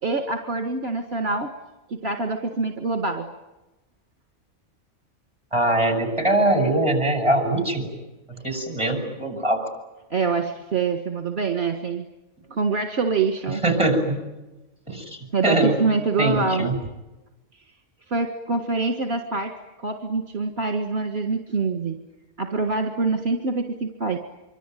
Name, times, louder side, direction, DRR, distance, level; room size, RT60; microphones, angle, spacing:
voice 1, 0.0-1.5 1.9-3.3 10.1-12.0 12.5-13.6 15.3-16.7 17.6-17.7 18.1-22.0 22.4-24.2, right 4 dB, 60° right, 6 dB, 2.0 m, -25 dB
voice 2, 5.5-7.9 8.3-9.6 13.5-14.2 14.9-15.2 15.4-15.8 16.2-16.7, right 1 dB, 25° right, 5 dB, 6.6 m, -22 dB
25.5 x 25.0 x 9.2 m, 1.0 s
omnidirectional pair, 1.2 m